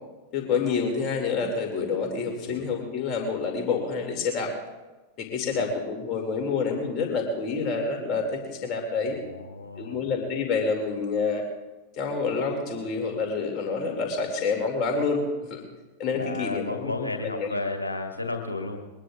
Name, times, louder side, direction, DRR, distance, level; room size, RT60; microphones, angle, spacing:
voice 1, 0.3-4.5 5.2-9.2 9.8-11.4 12.0-15.2 15.5-15.6 16.0-16.9 17.4-17.5, left 5 dB, 35° left, 2 dB, 2.5 m, -28 dB
voice 2, 5.4-5.7 9.0-10.1 16.1-18.8, left 2 dB, 80° left, 4 dB, 1.8 m, -33 dB
22.0 x 19.0 x 2.5 m, 1.2 s
figure-of-eight pair, 90°, 0 cm